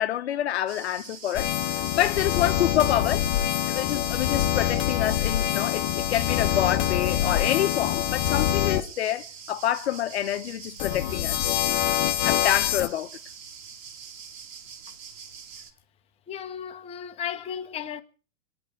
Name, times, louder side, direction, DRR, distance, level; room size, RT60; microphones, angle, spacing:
voice 1, 0.0-1.5 2.0-3.3 3.7-11.6 12.2-13.1, left 12 dB, 55° left, 1.0 m, -27 dB
sound 1, 0.7-15.7, right 7 dB, 40° right, 2.5 m, -44 dB
sound 2, 1.3-8.8 10.8-12.9, left 12 dB, 35° left, 1.1 m, -25 dB
voice 2, 16.3-18.0, left 8 dB, 15° left, 1.2 m, -34 dB
25.5 x 9.8 x 5.3 m
hypercardioid pair, 130°, 38 cm